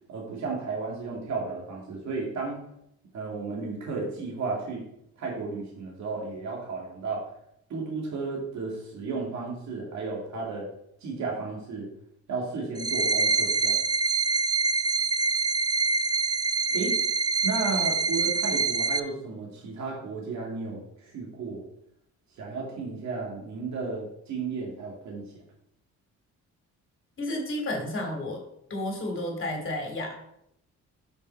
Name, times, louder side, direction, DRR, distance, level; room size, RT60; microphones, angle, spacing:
voice 1, 0.1-2.6 3.1-4.8 5.2-7.2 7.7-10.7 11.0-11.9 12.3-13.8 16.7-17.0 17.4-21.6 22.4-25.4, right 4 dB, 65° right, -2 dB, 2.2 m, -33 dB
sound 1, 12.8-19.0, right 4 dB, 15° right, 0.4 m, -25 dB
voice 2, 27.2-28.4 28.7-30.1, left 1 dB, 40° left, 2 dB, 2.5 m, -31 dB
6.8 x 5.5 x 4.5 m, 0.76 s
cardioid pair, 90°, 30 cm